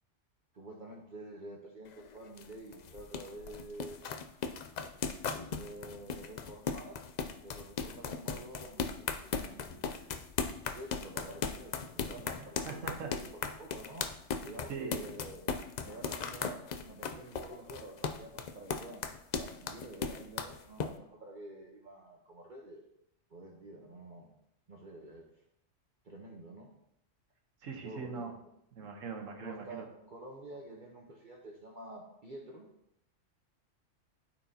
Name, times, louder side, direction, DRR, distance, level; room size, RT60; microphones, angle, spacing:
voice 1, 0.5-4.0 5.6-7.0 7.4-10.2 10.7-14.1 14.4-15.4 15.8-19.0 19.4-22.8 23.3-24.3 24.7-25.2 26.0-26.7 27.8-28.3 29.4-32.7, right 2 dB, 45° right, -2 dB, 1.0 m, -49 dB
sound 1, 1.9-20.9, left 6 dB, 65° left, 0.4 m, -37 dB
voice 2, 12.7-13.1 14.7-15.1 27.6-28.3 28.7-29.9, right 5 dB, 85° right, 3 dB, 1.4 m, -41 dB
12.5 x 4.4 x 2.8 m, 0.79 s
omnidirectional pair, 1.3 m